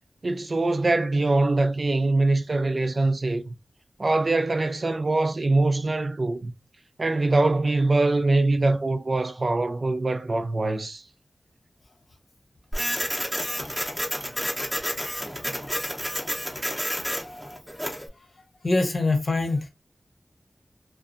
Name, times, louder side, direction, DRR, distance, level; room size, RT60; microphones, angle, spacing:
voice 1, 0.2-3.5 4.0-6.5 7.0-11.0 15.5-15.6, right 2 dB, 55° right, 0.4 m, -23 dB
Printer, 12.7-18.1, equal, 5° left, 0.6 m, -30 dB
voice 2, 18.6-19.7, left 2 dB, 65° left, 0.7 m, -23 dB
2.6 x 2.2 x 2.4 m
wide cardioid pair, 75°, 0 cm